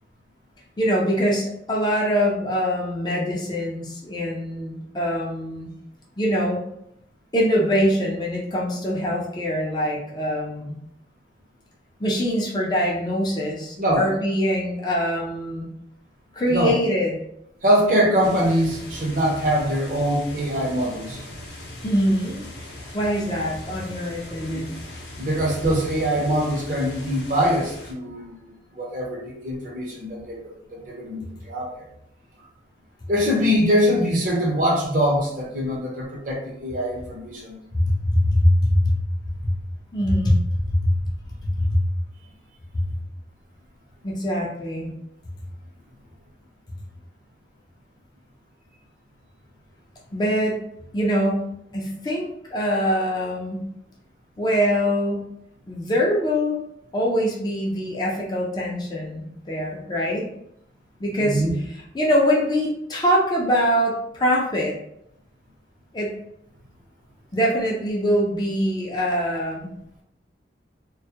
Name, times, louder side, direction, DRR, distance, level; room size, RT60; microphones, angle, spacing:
voice 1, 0.8-5.7 6.2-6.6 7.3-10.8 12.0-15.7 16.3-17.2 21.8-22.4 22.9-24.7 37.7-39.0 39.4-39.5 39.9-40.4 40.7-40.9 41.5-41.8 42.7-42.8 44.0-44.9 50.1-50.6 50.9-51.5 51.7-53.6 54.4-55.3 55.7-56.6 56.9-60.3 61.0-61.4 61.9-64.8 65.9-66.1 67.3-69.7, equal, 25° left, -3 dB, 0.4 m, -23 dB
voice 2, 17.6-21.2 24.4-24.6 25.2-31.8 33.1-37.6 61.2-61.5, equal, 45° right, -2 dB, 0.6 m, -23 dB
sound 1, 18.2-27.9, left 1 dB, 65° left, 0.7 m, -39 dB
2.2 x 2.1 x 2.7 m, 0.75 s
head